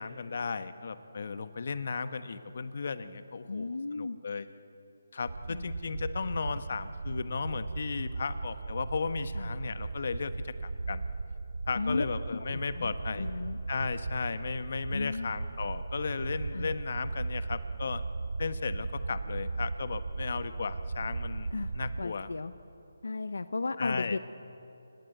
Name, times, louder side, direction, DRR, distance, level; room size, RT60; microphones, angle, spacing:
voice 1, 0.0-4.5 5.1-11.0 11.7-13.3 13.7-18.0 18.4-22.3 23.8-24.2, left 5 dB, 55° left, 11 dB, 1.3 m, -35 dB
voice 2, 3.5-4.2 5.5-5.7 9.3-9.5 11.7-12.0 12.3-13.6 14.9-15.3 16.5-16.7 21.5-21.7 22.0-22.5 23.0-24.2, left 3 dB, 80° left, 12 dB, 0.8 m, -35 dB
sound 1, 5.2-22.0, right 3 dB, 70° right, 0.8 m, -37 dB
29.0 x 20.0 x 8.1 m, 2.9 s
hypercardioid pair, 165°, 0 cm